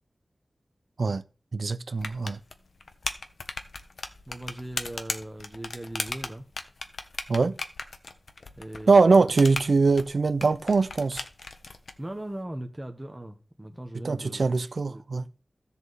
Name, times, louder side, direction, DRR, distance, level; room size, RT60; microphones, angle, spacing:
voice 1, 1.5-2.4 7.3-7.6 8.9-11.2 14.0-15.2, right 4 dB, 65° right, 0.9 m, -22 dB
sound 1, 2.0-11.9, left 3 dB, 75° left, 1.3 m, -37 dB
voice 2, 4.3-6.4 8.6-9.3 12.0-15.0, right 1 dB, 15° right, 1.4 m, -39 dB
15.5 x 7.3 x 4.2 m
wide cardioid pair, 100°, 0 cm